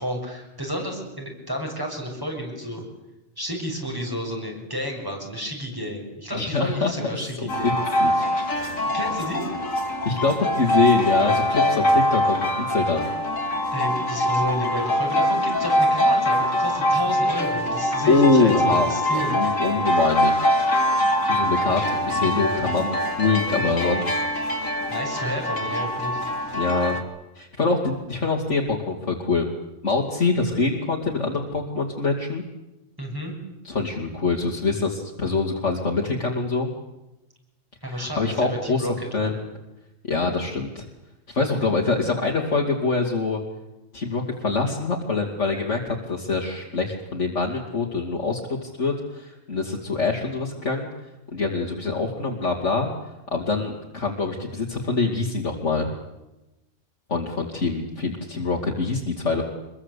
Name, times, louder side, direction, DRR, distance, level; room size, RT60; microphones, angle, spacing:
voice 1, 0.0-2.8 3.4-7.7 8.9-9.4 13.7-19.4 21.8-21.9 22.4-22.6 24.9-26.2 33.0-33.3 37.8-39.4, equal, 15° right, 0 dB, 6.9 m, -31 dB
voice 2, 6.3-6.9 7.4-7.7 8.0-8.2 8.5-8.6 10.0-13.1 18.1-20.5 21.3-24.2 26.5-27.0 27.3-29.5 29.8-32.4 33.6-36.7 37.9-38.9 39.1-39.4 40.1-40.8 41.3-43.4 43.9-50.9 51.3-52.9 53.3-55.9 57.1-59.4, left 3 dB, 65° left, -2 dB, 3.1 m, -24 dB
sound 1, 7.5-27.0, left 1 dB, 80° left, 3.0 m, -23 dB
25.5 x 22.0 x 8.4 m, 0.97 s
omnidirectional pair, 1.3 m